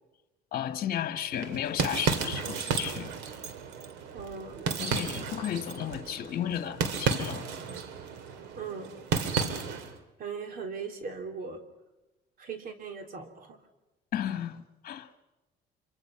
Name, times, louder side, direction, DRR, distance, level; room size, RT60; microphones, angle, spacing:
voice 1, 0.5-3.1 4.8-7.4 9.4-9.6 14.1-15.1, left 10 dB, 55° left, 1.5 m, -34 dB
sound 1, 1.3-10.0, right 5 dB, 90° right, 2.3 m, -33 dB
voice 2, 4.1-5.2 8.6-8.9 9.3-9.8 10.2-11.6 12.4-13.6, right 5 dB, 60° right, 3.4 m, -39 dB
26.5 x 24.5 x 5.9 m
cardioid pair, 110°, 17 cm